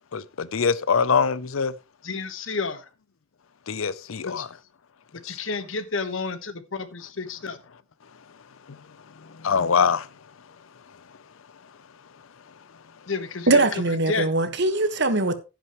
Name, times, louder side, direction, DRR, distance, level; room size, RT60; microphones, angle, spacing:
voice 1, 0.1-1.7 3.7-4.5 5.2-5.4 8.7-8.8 9.4-10.1, left 6 dB, 85° left, 0.6 m, -23 dB
voice 2, 2.0-2.9 4.2-4.5 5.1-7.6 13.1-14.3, left 4 dB, 70° left, 1.3 m, -31 dB
voice 3, 13.5-15.3, right 2 dB, 60° right, 1.4 m, -21 dB
11.0 x 10.0 x 3.0 m
head